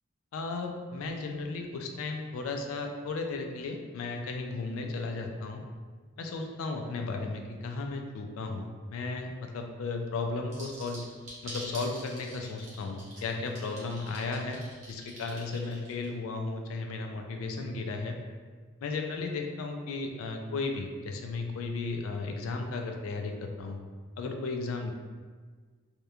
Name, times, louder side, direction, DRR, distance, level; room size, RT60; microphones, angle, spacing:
voice 1, 0.3-5.6 6.2-11.1 11.4-14.6 14.9-18.2 18.8-23.8 24.2-24.9, left 3 dB, 75° left, 3 dB, 0.3 m, -35 dB
sound 1, 10.5-16.1, right 1 dB, 35° right, 0.8 m, -45 dB
2.9 x 2.2 x 2.3 m, 1.5 s
head